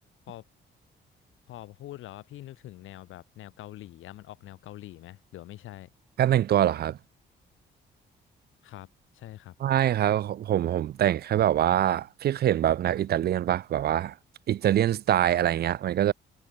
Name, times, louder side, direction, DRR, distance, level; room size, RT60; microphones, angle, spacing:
voice 1, 1.5-5.9 8.6-8.9 9.1-9.5, left 14 dB, 85° left, 2.8 m, -44 dB
voice 2, 6.2-7.0 9.6-14.1 14.5-16.1, right 11 dB, 55° right, 0.4 m, -24 dB
cardioid pair, 90°, 20 cm